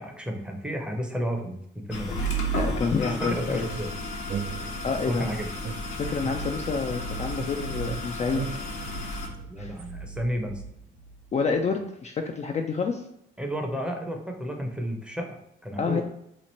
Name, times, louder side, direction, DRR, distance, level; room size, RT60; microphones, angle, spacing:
voice 1, 0.0-2.2 3.1-3.9 5.1-5.5 9.5-10.6 13.4-16.0, equal, 5° right, 2 dB, 0.7 m, -32 dB
sound 1, 1.9-9.3, equal, 80° left, 0.9 m, -33 dB
voice 2, 2.6-3.7 4.8-5.3 5.9-8.4 8.8-8.9 9.6-9.7 11.3-13.0 15.8-16.0, left 5 dB, 35° left, 3 dB, 0.4 m, -28 dB
sound 2, 3.7-5.2 5.6-7.1 7.4-9.9, right 7 dB, 45° right, 0.4 m, -38 dB
sound 3, 5.9-11.6, right 2 dB, 90° right, 0.8 m, -40 dB
3.0 x 2.4 x 4.1 m, 0.75 s
cardioid pair, 90°, 20 cm